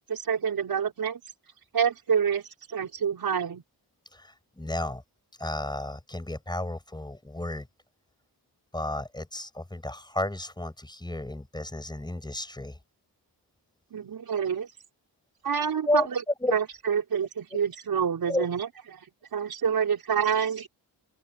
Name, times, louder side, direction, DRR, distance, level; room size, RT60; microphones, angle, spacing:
voice 1, 0.1-1.2 1.7-3.6 13.9-14.7 15.4-16.2 16.5-18.7 19.3-20.7, right 7 dB, 60° right, 5.3 m, -27 dB
voice 2, 4.1-5.0 5.4-7.7 8.7-12.8 15.9-16.1 16.4-16.6 17.5-17.6 18.3-18.5, left 1 dB, 10° left, 5.8 m, -32 dB
cardioid pair, 115°, 40 cm